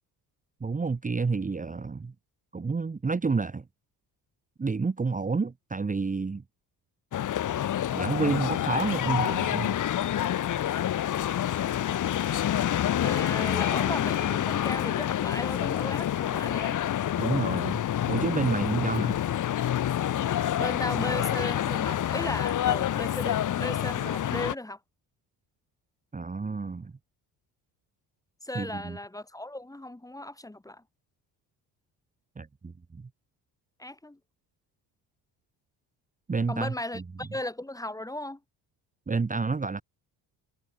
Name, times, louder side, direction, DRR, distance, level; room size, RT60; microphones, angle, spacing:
voice 1, 0.6-2.1 2.5-3.6 4.6-6.4 7.9-9.8 17.2-17.8 18.1-19.2 26.1-26.9 28.5-29.0 32.4-33.1 36.3-37.0 39.1-39.8, right 4 dB, 20° right, 1.4 m, -29 dB
sound 1, 7.1-24.5, left 11 dB, 45° left, 1.0 m, -27 dB
voice 2, 13.0-16.8 20.6-24.8 28.4-30.8 33.8-34.2 36.5-38.4, left 1 dB, 10° left, 1.8 m, -36 dB
cardioid pair, 115°, 42 cm